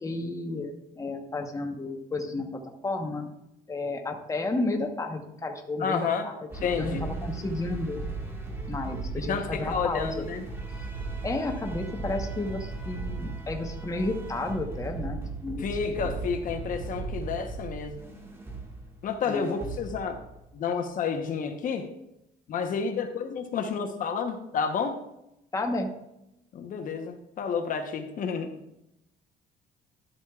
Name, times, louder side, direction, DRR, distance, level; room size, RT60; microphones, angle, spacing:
voice 1, 0.0-3.3 3.7-6.5 6.8-8.0 8.7-10.3 11.2-15.9 19.3-19.6 25.5-25.9, left 2 dB, 20° left, 3 dB, 1.1 m, -32 dB
voice 2, 5.8-6.3 6.6-7.1 9.3-10.4 15.6-18.0 19.0-20.2 20.5-21.9 22.5-25.0 26.5-28.5, left 6 dB, 55° left, 5 dB, 1.0 m, -30 dB
sound 1, 6.5-20.6, right 3 dB, 15° right, 1.6 m, -37 dB
12.0 x 7.8 x 2.4 m, 0.86 s
cardioid pair, 110°, 17 cm